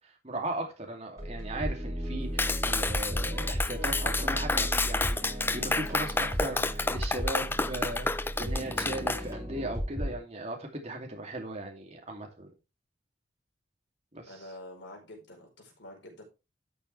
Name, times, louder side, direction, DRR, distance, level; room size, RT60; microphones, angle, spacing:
voice 1, 0.0-12.5 14.1-14.3, right 1 dB, 35° right, 2.7 m, -38 dB
sound 1, 1.2-10.2, equal, 20° right, 4.9 m, -35 dB
Clapping, 2.4-9.2, left 3 dB, 10° left, 0.4 m, -30 dB
voice 2, 14.3-16.2, left 1 dB, 75° left, 4.9 m, -47 dB
12.5 x 7.0 x 3.3 m
head